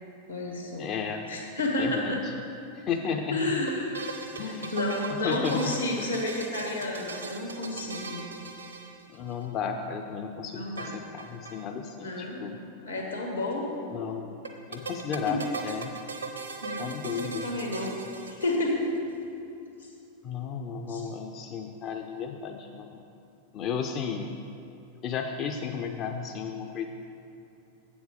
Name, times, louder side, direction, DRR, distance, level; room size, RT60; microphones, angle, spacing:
voice 1, 0.3-0.8 1.3-2.2 3.3-4.4 4.7-8.2 10.5-10.9 12.0-12.4 12.8-13.7 15.3-15.4 16.6-17.9 18.3-18.9 20.9-21.0, left 2 dB, 80° left, 0 dB, 1.6 m, -31 dB
voice 2, 0.8-1.3 1.8-2.3 2.8-3.4 4.3-4.8 5.1-5.8 9.1-12.6 13.9-14.3 14.7-15.9 16.8-17.5 20.2-23.0 23.5-24.4 25.0-26.9, left 6 dB, 35° left, 4 dB, 0.4 m, -33 dB
sound 1, 3.7-9.4 10.8-11.6 11.9-12.0 12.1-12.2 14.4-19.0, right 4 dB, 75° right, 0.7 m, -39 dB
7.8 x 7.1 x 4.9 m, 2.6 s
figure-of-eight pair, 90°, 0 cm